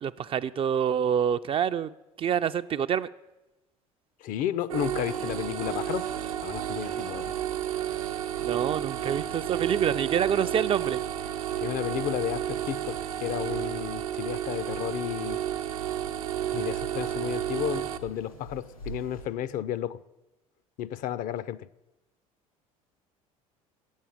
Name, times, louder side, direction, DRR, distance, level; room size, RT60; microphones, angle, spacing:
voice 1, 0.0-1.9 2.2-3.1 8.4-11.0, right 8 dB, 30° right, 0.4 m, -27 dB
voice 2, 4.2-6.1 6.4-7.3 11.6-15.4 16.5-20.0 20.8-21.7, left 11 dB, 50° left, 0.5 m, -32 dB
sound 1, 4.7-18.0, right 11 dB, 75° right, 0.7 m, -32 dB
sound 2, 4.8-19.2, right 1 dB, 90° left, 3.2 m, -49 dB
8.7 x 7.3 x 8.6 m
hypercardioid pair, 65°, 18 cm